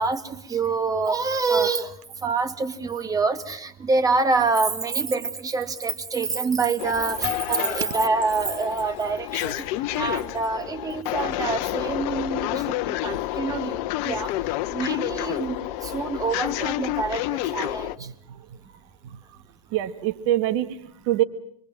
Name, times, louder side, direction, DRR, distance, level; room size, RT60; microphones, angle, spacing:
voice 1, 0.0-1.9 2.2-9.5 10.0-14.3 14.7-17.9, right 4 dB, 15° right, 10 dB, 2.2 m, -26 dB
sound 1, 6.8-18.0, left 16 dB, 50° left, 1.1 m, -29 dB
voice 2, 18.0-18.5 19.0-19.2 19.7-21.2, right 13 dB, 55° right, 11 dB, 1.6 m, -26 dB
27.0 x 23.5 x 7.6 m, 0.70 s
hypercardioid pair, 105°, 20 cm